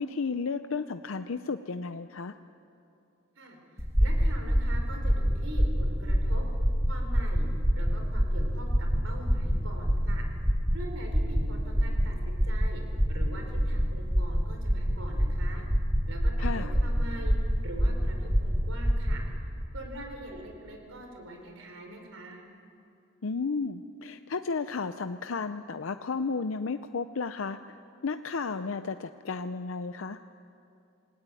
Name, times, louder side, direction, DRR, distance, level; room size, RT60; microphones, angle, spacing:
voice 1, 0.0-2.4 16.4-16.7 23.2-27.8 28.0-30.2, left 4 dB, 70° left, 10 dB, 0.6 m, -33 dB
sound 1, 3.8-19.2, equal, 15° right, 2.3 m, -26 dB
voice 2, 4.0-6.5 6.9-7.5 7.7-10.2 10.7-12.8 13.1-15.6 16.1-17.4 17.6-19.2 19.7-22.4, right 1 dB, 75° right, 3 dB, 4.5 m, -43 dB
28.0 x 19.0 x 9.1 m, 2.7 s
head